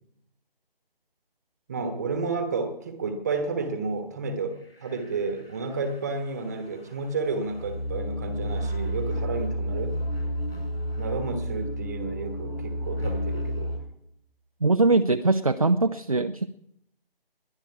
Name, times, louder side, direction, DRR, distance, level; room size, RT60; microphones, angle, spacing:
voice 1, 1.7-10.0 11.0-13.9, right 4 dB, 15° right, 8 dB, 1.2 m, -31 dB
sound 1, 4.6-13.8, equal, 80° left, 4.9 m, -31 dB
voice 2, 14.6-16.5, right 3 dB, 40° right, 8 dB, 0.4 m, -22 dB
21.5 x 10.5 x 4.7 m, 0.79 s
figure-of-eight pair, 155°, 29 cm